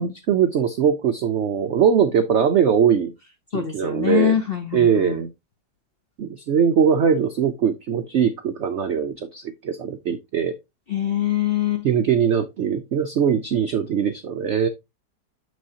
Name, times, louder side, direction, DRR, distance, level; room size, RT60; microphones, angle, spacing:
voice 1, 0.0-3.1 3.5-4.4 4.7-5.3 6.2-10.5 11.8-14.7, right 7 dB, 85° right, 0.6 m, -21 dB
voice 2, 3.5-5.2 10.9-11.9, left 11 dB, 60° left, 0.6 m, -24 dB
6.2 x 6.2 x 2.7 m
omnidirectional pair, 1.9 m